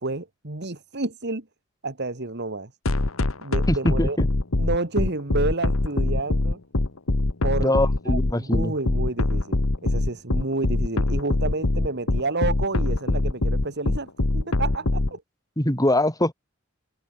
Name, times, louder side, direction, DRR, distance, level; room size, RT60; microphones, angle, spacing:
voice 1, 0.0-1.4 1.8-2.7 3.4-4.2 4.6-6.6 7.4-7.7 8.1-15.2, right 2 dB, 55° right, 2.0 m, -30 dB
sound 1, 2.9-15.1, left 2 dB, 90° left, 1.4 m, -22 dB
voice 2, 3.7-4.3 7.6-8.7 15.6-16.3, left 1 dB, 20° left, 5.0 m, -23 dB
head